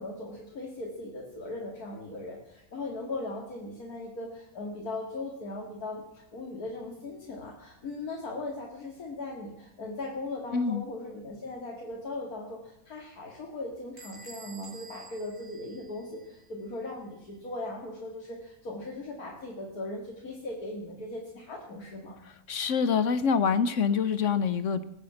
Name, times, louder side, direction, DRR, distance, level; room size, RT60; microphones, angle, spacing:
voice 1, 0.0-22.2, left 2 dB, 75° left, -1 dB, 2.8 m, -39 dB
voice 2, 10.5-10.8 22.5-24.8, left 6 dB, 60° left, 13 dB, 1.0 m, -26 dB
Bell / Door, 14.0-16.5, right 4 dB, 35° right, 3.0 m, -50 dB
20.0 x 8.6 x 7.9 m, 0.90 s
omnidirectional pair, 1.6 m